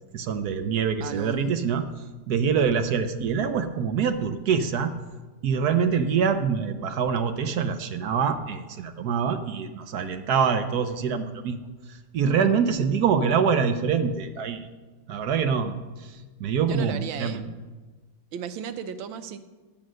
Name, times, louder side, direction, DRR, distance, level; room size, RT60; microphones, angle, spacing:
voice 1, 0.1-1.8 2.3-4.9 5.4-11.6 11.9-14.7 15.1-15.7 16.0-17.4, right 6 dB, 65° right, 9 dB, 1.1 m, -25 dB
voice 2, 1.0-1.6 12.4-12.5 16.6-17.4 18.3-19.4, right 7 dB, 90° right, 10 dB, 1.5 m, -35 dB
10.5 x 8.7 x 6.2 m, 1.3 s
omnidirectional pair, 2.1 m